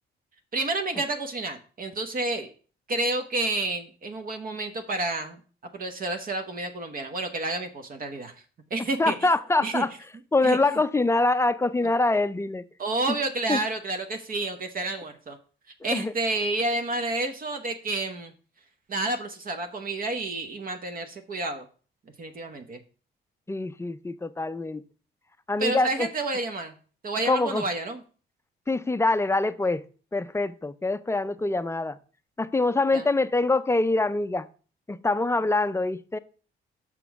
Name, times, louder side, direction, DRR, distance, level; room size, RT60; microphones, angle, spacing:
voice 1, 0.5-2.5 2.9-5.4 5.7-8.3 8.7-9.1 9.6-9.8 10.4-10.8 12.8-15.4 15.8-18.3 18.9-21.6 22.2-22.8 25.6-26.7 27.0-28.0 32.9-33.1, right 2 dB, 45° right, 1.0 m, -30 dB
voice 2, 9.0-9.9 10.3-12.6 13.1-13.2 13.5-13.6 15.9-16.1 23.5-24.8 25.5-26.1 27.3-27.6 28.7-29.8 30.1-32.0 32.4-34.5 34.9-36.2, left 2 dB, 15° left, 0.5 m, -24 dB
6.1 x 6.0 x 4.6 m
cardioid pair, 90°, 20 cm